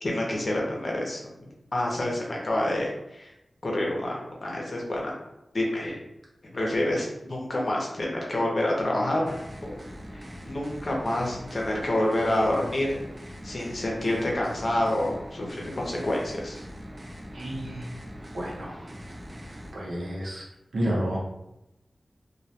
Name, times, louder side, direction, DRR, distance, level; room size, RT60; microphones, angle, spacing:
voice 1, 0.0-3.3 3.6-5.1 5.5-6.0 6.5-9.4 9.6-9.8 10.1-13.0 13.4-16.6, left 1 dB, 50° left, -2 dB, 0.6 m, -28 dB
sound 1, 9.2-19.7, equal, 30° right, 0.4 m, -42 dB
voice 2, 17.3-17.9 18.3-18.9 19.7-20.4 20.7-21.2, equal, 90° right, -4 dB, 0.7 m, -30 dB
2.2 x 2.1 x 2.7 m, 0.90 s
wide cardioid pair, 95°, 0 cm